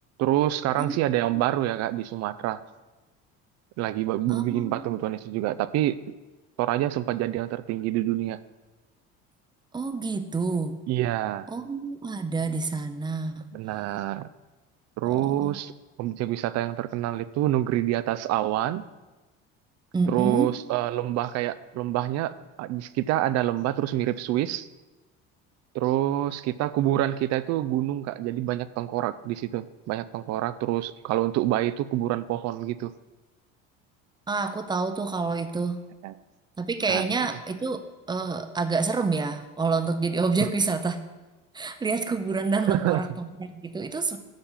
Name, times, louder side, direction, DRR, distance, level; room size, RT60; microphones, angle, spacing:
voice 1, 0.2-2.6 3.8-6.0 6.6-8.4 10.9-11.5 13.5-14.3 15.0-15.7 16.0-18.8 20.1-22.3 22.6-24.7 25.7-32.9 36.0-36.1 36.9-37.1 42.7-43.1, right 14 dB, 60° right, 15 dB, 0.5 m, -27 dB
voice 2, 4.3-4.8 9.7-10.8 11.5-13.5 15.1-15.6 19.9-20.5 34.3-35.8 36.6-41.0 41.5-44.2, right 4 dB, 15° right, 9 dB, 0.6 m, -28 dB
9.0 x 5.3 x 7.2 m, 1.2 s
cardioid pair, 135°, 30 cm